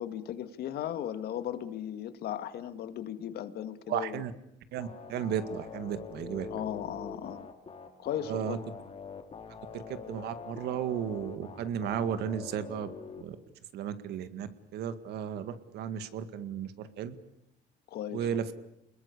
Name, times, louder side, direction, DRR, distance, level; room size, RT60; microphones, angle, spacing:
voice 1, 0.0-4.3 6.5-7.5 8.0-8.6 17.9-18.4, left 10 dB, 70° left, 11 dB, 1.9 m, -36 dB
voice 2, 3.9-4.3 4.7-6.5 8.3-8.6 9.7-12.9 13.2-13.4 13.7-17.1 18.1-18.5, right 9 dB, 80° right, 11 dB, 2.0 m, -34 dB
sound 1, 4.8-13.2, left 5 dB, 35° left, 3.4 m, -44 dB
28.5 x 21.0 x 8.5 m, 0.81 s
cardioid pair, 110°, 17 cm